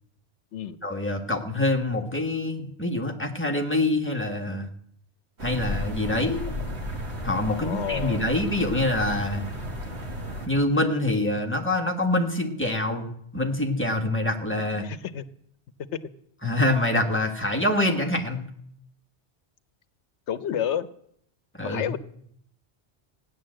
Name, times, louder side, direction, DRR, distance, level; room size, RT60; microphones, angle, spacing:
voice 1, 0.8-4.7 5.4-6.4 7.2-9.5 10.5-14.9 16.4-18.5 21.5-21.8, left 1 dB, 10° left, 2 dB, 1.6 m, -25 dB
sound 1, 5.4-10.5, equal, 70° right, 2.6 m, -33 dB
voice 2, 7.5-8.3 14.8-15.2 15.9-16.0 20.3-20.9 21.6-22.0, left 9 dB, 85° left, 13 dB, 1.1 m, -30 dB
16.0 x 9.9 x 7.6 m, 0.70 s
omnidirectional pair, 1.2 m